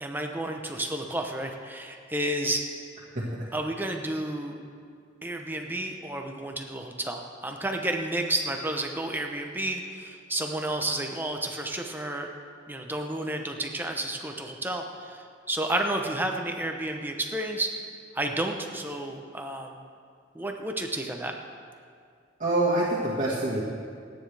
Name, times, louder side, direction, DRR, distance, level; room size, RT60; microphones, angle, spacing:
voice 1, 0.0-2.7 3.5-4.6 5.2-12.3 12.7-17.7 18.1-19.8 20.3-21.4, right 1 dB, 10° right, 3 dB, 0.9 m, -31 dB
voice 2, 22.4-23.6, right 2 dB, 45° right, -6 dB, 2.0 m, -25 dB
27.5 x 9.7 x 3.5 m, 2.2 s
head